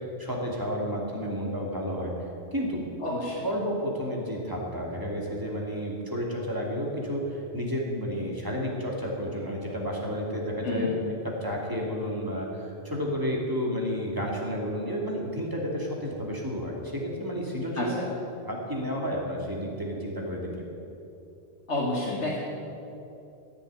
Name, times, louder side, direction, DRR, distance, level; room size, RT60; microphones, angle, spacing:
voice 1, 0.0-2.1 2.5-2.8 3.4-11.0 11.2-17.9 18.4-20.7, equal, 20° right, -2 dB, 2.6 m, -31 dB
voice 2, 3.0-3.5 10.6-10.9 17.7-18.1 21.7-22.4, left 2 dB, 80° left, -5 dB, 2.4 m, -29 dB
15.0 x 6.9 x 9.6 m, 2.8 s
omnidirectional pair, 1.1 m